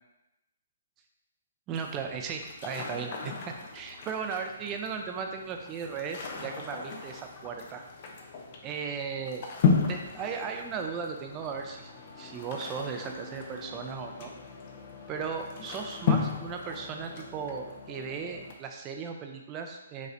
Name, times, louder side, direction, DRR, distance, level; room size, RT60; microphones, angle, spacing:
sound 1, 1.7-18.5, left 5 dB, 45° left, 0.6 m, -35 dB
voice 1, 1.7-7.8 8.6-9.5 9.9-14.3 15.1-20.1, right 6 dB, 25° right, 4 dB, 0.5 m, -36 dB
5.2 x 3.1 x 2.6 m, 0.95 s
hypercardioid pair, 140°, 0 cm